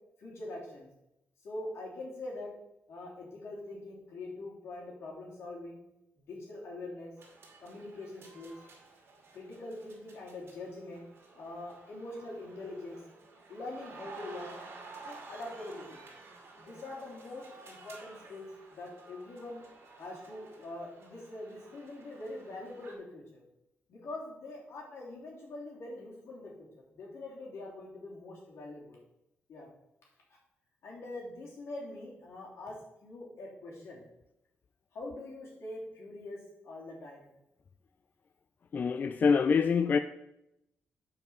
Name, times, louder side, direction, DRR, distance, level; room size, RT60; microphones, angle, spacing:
voice 1, 0.2-0.9 1.4-2.5 2.9-5.8 6.2-7.1 7.6-8.5 9.3-11.0 11.3-13.0 13.5-14.6 15.0-16.0 16.6-19.6 20.0-23.4 23.9-29.0 29.5-29.7 30.8-32.7 33.0-34.0 34.9-37.3, left 2 dB, 75° left, 3.2 m, -43 dB
sound 1, 7.2-23.0, right 3 dB, 65° right, 2.3 m, -52 dB
voice 2, 38.7-40.0, left 5 dB, 40° left, 0.3 m, -25 dB
7.1 x 5.3 x 6.1 m
cardioid pair, 120°, 5 cm